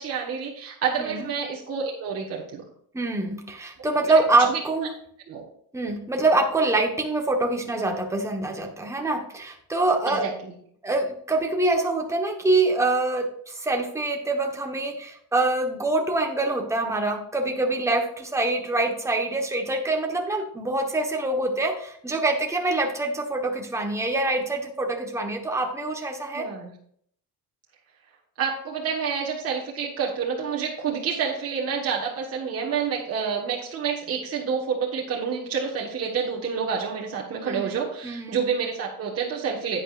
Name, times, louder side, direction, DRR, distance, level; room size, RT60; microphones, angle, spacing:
voice 1, 0.0-2.6 3.8-4.2 4.5-4.6 5.3-5.4 10.1-10.5 26.3-26.7 28.4-39.8, right 6 dB, 40° right, -2 dB, 1.4 m, -28 dB
voice 2, 2.9-4.9 5.7-10.3 10.8-26.5 37.4-38.4, right 2 dB, 10° right, 2 dB, 1.1 m, -25 dB
11.0 x 8.8 x 2.4 m, 0.64 s
cardioid pair, 160°, 36 cm